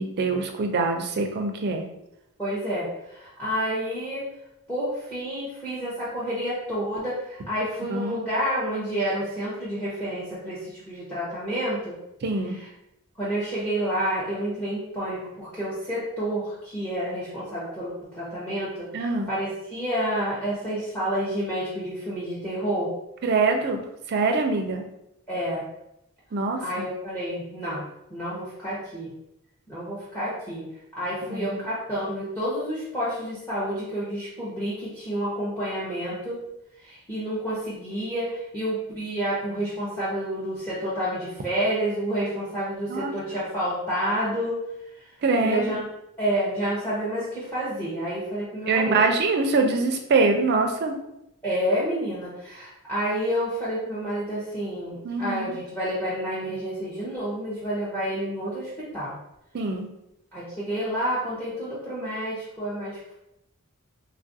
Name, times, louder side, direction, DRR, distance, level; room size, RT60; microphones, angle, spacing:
voice 1, 0.0-1.8 7.9-8.2 12.2-12.6 18.9-19.3 23.2-23.8 24.1-24.8 26.3-26.6 31.3-31.5 42.9-43.1 45.2-45.7 48.7-50.9 55.0-55.5 59.5-59.9, right 3 dB, 45° right, 4 dB, 0.4 m, -24 dB
voice 2, 2.4-4.3 4.7-12.0 12.4-12.7 13.2-22.9 25.3-25.6 26.6-29.1 29.7-30.7 30.9-36.4 36.8-44.6 44.9-45.1 45.4-45.8 46.2-49.0 51.4-59.2 60.3-63.1, equal, 10° left, -9 dB, 0.7 m, -29 dB
3.2 x 2.4 x 2.6 m, 0.84 s
head